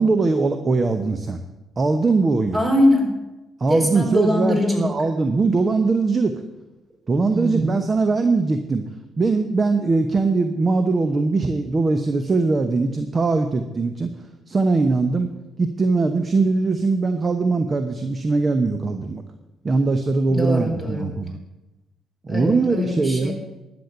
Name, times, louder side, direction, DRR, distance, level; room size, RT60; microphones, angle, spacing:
voice 1, 0.0-1.4 1.8-2.6 3.6-6.3 7.1-8.8 9.2-14.2 14.5-15.3 15.6-19.2 19.6-21.4 22.2-23.3, right 3 dB, 35° right, 8 dB, 1.0 m, -21 dB
voice 2, 2.5-3.2 3.7-4.9 7.3-7.8 20.3-21.1 22.3-23.3, left 1 dB, 20° right, 2 dB, 4.2 m, -22 dB
11.5 x 7.1 x 8.1 m, 1.0 s
hypercardioid pair, 50°, 0 cm